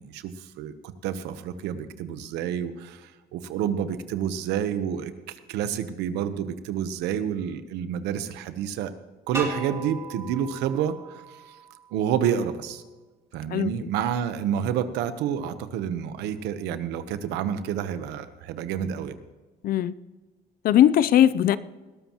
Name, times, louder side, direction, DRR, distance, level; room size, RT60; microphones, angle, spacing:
voice 1, 0.0-8.9 9.3-11.2 11.9-12.8 13.3-19.1, right 9 dB, 90° right, 11 dB, 1.0 m, -29 dB
sound 1, 9.3-12.2, right 3 dB, 15° right, 2.7 m, -37 dB
voice 2, 19.6-19.9 20.6-21.6, left 11 dB, 60° left, 17 dB, 0.6 m, -19 dB
20.0 x 13.0 x 3.0 m, 1.3 s
cardioid pair, 110°, 17 cm